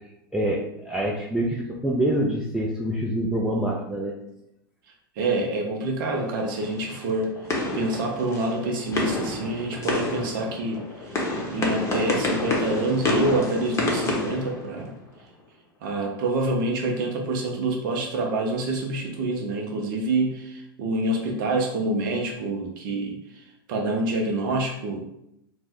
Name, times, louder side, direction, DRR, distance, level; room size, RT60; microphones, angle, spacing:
voice 1, 0.0-4.1, right 1 dB, 5° right, -4 dB, 0.4 m, -26 dB
voice 2, 5.2-7.3 7.7-11.2 11.5-14.9 15.8-25.1, right 2 dB, 60° right, 1 dB, 0.5 m, -27 dB
sound 1, 6.1-15.2, left 2 dB, 25° left, 0.7 m, -29 dB
2.5 x 2.1 x 3.4 m, 0.79 s
hypercardioid pair, 100°, 12 cm